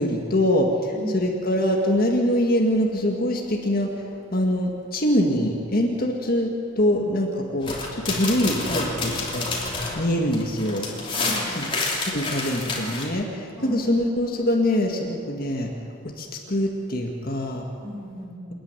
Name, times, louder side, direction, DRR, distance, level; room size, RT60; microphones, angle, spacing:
voice 1, 0.0-4.0 4.3-9.5 10.0-10.9 11.6-11.7 12.1-15.7 16.0-17.7, left 1 dB, 45° left, 1 dB, 1.9 m, -24 dB
voice 2, 0.9-1.3 11.1-11.7 13.6-13.8 17.8-18.5, equal, 20° right, -4 dB, 6.7 m, -35 dB
sound 1, 7.6-13.0, left 3 dB, 25° left, 3.1 m, -29 dB
28.0 x 10.0 x 9.7 m, 2.4 s
head